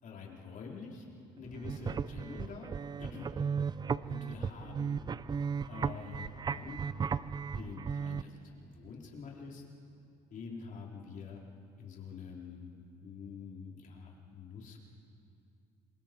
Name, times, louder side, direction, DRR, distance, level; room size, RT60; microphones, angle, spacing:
voice 1, 0.0-1.0 1.4-2.7 3.0-3.3 4.1-5.0 5.7-6.9 7.5-9.6 10.3-11.4 11.8-12.7 13.0-14.8, left 5 dB, 50° left, -2 dB, 4.0 m, -46 dB
sound 1, 1.5-8.2, right 6 dB, 25° right, 0.4 m, -36 dB
27.0 x 24.0 x 4.6 m, 2.5 s
cardioid pair, 110°, 17 cm